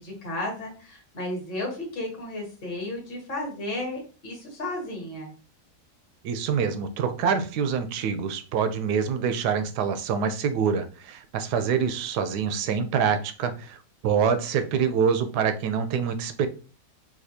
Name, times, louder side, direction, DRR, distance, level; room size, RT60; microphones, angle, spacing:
voice 1, 0.0-5.3, left 1 dB, 35° left, 0 dB, 1.3 m, -33 dB
voice 2, 6.2-16.5, right 6 dB, 80° right, 9 dB, 1.1 m, -26 dB
4.2 x 2.5 x 2.7 m, 0.36 s
omnidirectional pair, 1.8 m